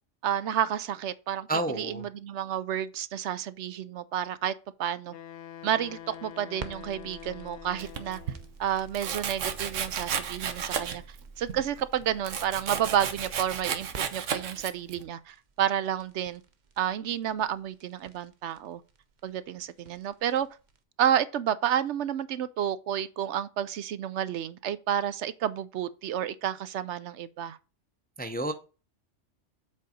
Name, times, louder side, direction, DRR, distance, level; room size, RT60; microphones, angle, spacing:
voice 1, 0.2-1.5 1.7-4.5 4.8-5.1 5.6-8.2 8.6-11.0 11.4-16.4 16.8-18.8 19.2-20.5 21.0-27.6, right 10 dB, 70° right, 0.9 m, -30 dB
voice 2, 1.5-2.1 28.2-28.5, right 2 dB, 10° left, 0.5 m, -30 dB
Wind instrument woodwind instrument, 5.1-8.6, left 10 dB, 75° left, 0.9 m, -45 dB
sound 1, 5.6-20.8, right 5 dB, 45° right, 0.8 m, -49 dB
Domestic sounds home sounds, 7.8-8.4 9.0-11.2 11.5-15.0, right 8 dB, 90° right, 1.2 m, -33 dB
7.6 x 4.0 x 5.1 m
omnidirectional pair, 1.2 m